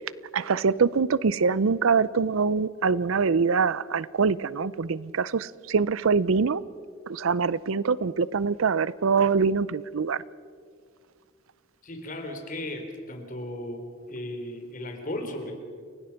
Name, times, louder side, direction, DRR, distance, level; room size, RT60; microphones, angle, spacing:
voice 1, 0.3-6.6 7.1-10.2, right 5 dB, 85° right, 20 dB, 0.6 m, -24 dB
voice 2, 11.8-15.5, left 1 dB, 40° left, 4 dB, 3.3 m, -36 dB
29.5 x 17.5 x 5.8 m, 2.1 s
head